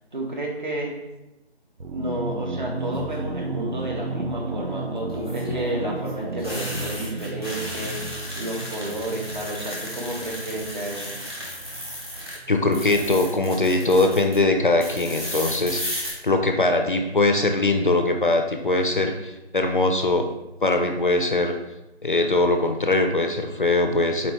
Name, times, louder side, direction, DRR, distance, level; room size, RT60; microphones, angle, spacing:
voice 1, 0.1-0.9 1.8-8.0 8.4-11.1, right 1 dB, 45° right, -1 dB, 1.0 m, -31 dB
sound 1, 1.8-13.3, right 2 dB, 80° right, 0.8 m, -34 dB
sound 2, 2.7-3.2 5.1-12.4 12.7-14.4 14.8-16.1, equal, 25° right, 0.8 m, -34 dB
voice 2, 12.5-20.3 20.6-21.5 22.0-24.3, left 2 dB, 50° left, 5 dB, 0.4 m, -21 dB
4.2 x 4.1 x 3.1 m, 0.96 s
figure-of-eight pair, 170°, 33 cm